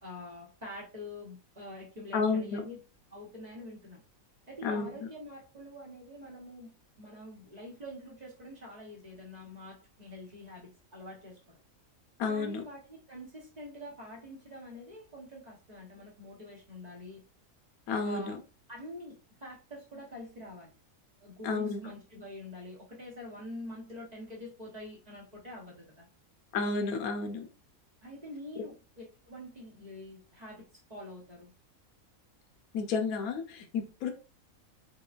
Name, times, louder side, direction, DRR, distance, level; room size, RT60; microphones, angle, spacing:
voice 1, 0.0-2.8 3.1-4.0 4.5-11.6 12.3-17.2 18.0-18.4 18.7-20.7 21.2-26.1 28.0-30.6 30.9-31.5, left 1 dB, 30° right, -3 dB, 1.0 m, -46 dB
voice 2, 2.1-2.6 4.6-4.9 12.2-12.6 17.9-18.4 21.4-21.8 26.5-27.5 28.6-28.7 32.7-34.1, left 4 dB, 80° left, 6 dB, 1.1 m, -31 dB
4.6 x 2.3 x 2.4 m, 0.33 s
omnidirectional pair, 1.5 m